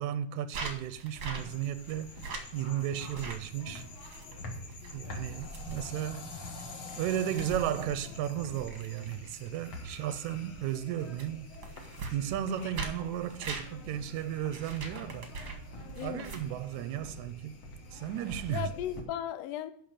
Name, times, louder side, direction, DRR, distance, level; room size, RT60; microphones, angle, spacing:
voice 1, 0.0-2.1 2.5-3.9 4.9-6.3 6.6-6.7 7.0-11.5 12.1-15.3 16.0-17.5 17.9-18.7, right 11 dB, 90° right, 2.0 m, -34 dB
sound 1, 0.5-16.9, right 3 dB, 50° right, 1.3 m, -44 dB
sound 2, 1.4-19.0, left 2 dB, 50° left, 1.9 m, -46 dB
voice 2, 4.8-5.3 12.6-12.8 15.9-16.3 18.5-19.7, left 10 dB, 75° left, 1.6 m, -37 dB
11.5 x 4.1 x 7.2 m
omnidirectional pair, 3.3 m